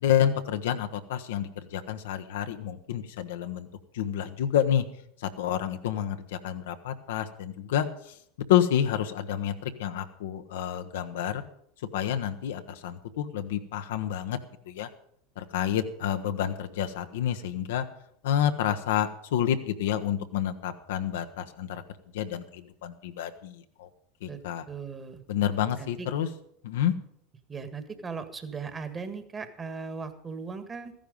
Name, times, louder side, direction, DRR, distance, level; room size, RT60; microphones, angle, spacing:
voice 1, 0.0-3.7 3.9-4.8 5.2-7.9 8.5-11.4 11.9-14.4 14.7-14.9 15.4-17.8 18.2-21.8 22.1-23.9 24.2-24.6 25.3-26.3 26.6-26.9, left 10 dB, 70° left, 8 dB, 1.0 m, -29 dB
voice 2, 24.7-25.2 25.8-26.1 27.5-30.9, right 5 dB, 25° right, 9 dB, 1.8 m, -38 dB
14.0 x 10.5 x 5.3 m, 0.69 s
hypercardioid pair, 85°, 0 cm